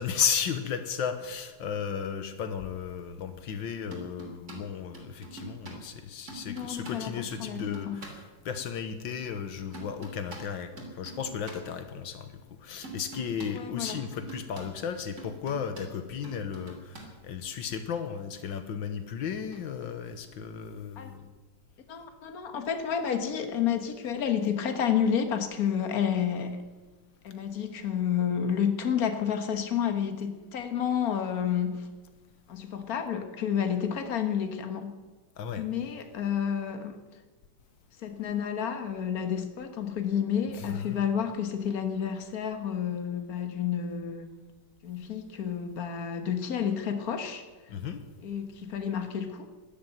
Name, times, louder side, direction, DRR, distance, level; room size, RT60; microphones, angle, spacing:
voice 1, 0.0-12.3 12.6-21.3 35.4-35.6 40.7-41.0 47.7-48.0, left 7 dB, 85° left, 9 dB, 1.8 m, -34 dB
sound 1, 3.9-4.6 4.9-5.8 6.3-8.1 9.7-10.4 10.8-11.6 12.8-13.5 13.9-14.6 15.2-15.8 16.2-17.0 19.5-19.6, right 3 dB, 40° right, 3.5 m, -45 dB
voice 2, 6.5-8.0 13.5-14.0 21.0-21.1 21.9-26.6 27.2-31.9 32.5-35.0 35.6-37.0 38.0-44.3 44.8-47.5 48.2-49.5, left 8 dB, 55° left, 7 dB, 1.8 m, -30 dB
13.0 x 11.5 x 9.2 m, 1.3 s
omnidirectional pair, 2.0 m